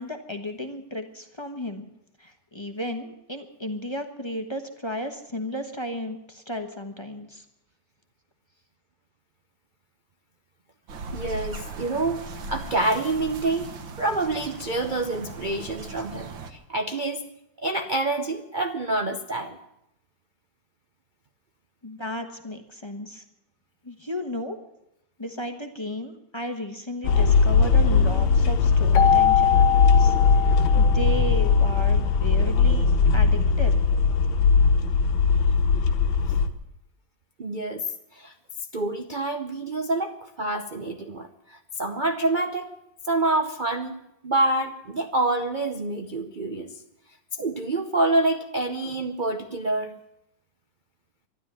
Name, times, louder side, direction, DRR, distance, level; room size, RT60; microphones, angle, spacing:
voice 1, 0.0-1.9 2.2-7.4 21.8-23.2 23.8-24.6 25.2-32.9 33.1-33.8, left 1 dB, 20° left, 5 dB, 1.0 m, -34 dB
sound 1, 10.9-16.5, right 3 dB, 85° right, 2.0 m, -38 dB
voice 2, 11.1-13.7 14.0-17.3 17.6-19.6 37.4-38.3 38.7-42.7 43.0-44.0 44.2-46.7 47.4-49.9, right 2 dB, 50° right, 6 dB, 0.5 m, -27 dB
sound 2, 27.0-36.5, left 5 dB, 85° left, 1.8 m, -19 dB
Keyboard (musical), 28.9-31.6, left 10 dB, 70° left, 1.5 m, -23 dB
12.5 x 11.5 x 9.6 m, 0.84 s
omnidirectional pair, 2.0 m